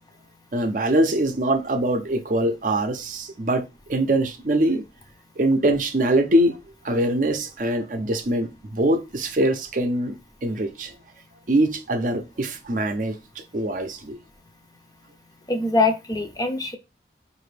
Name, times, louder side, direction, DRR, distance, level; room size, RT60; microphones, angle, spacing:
voice 1, 0.5-4.8 5.4-6.6 6.8-10.9 11.5-14.2, right 1 dB, 45° right, 0.6 m, -23 dB
voice 2, 15.5-16.8, left 3 dB, 20° left, 0.5 m, -23 dB
4.8 x 2.6 x 3.2 m
head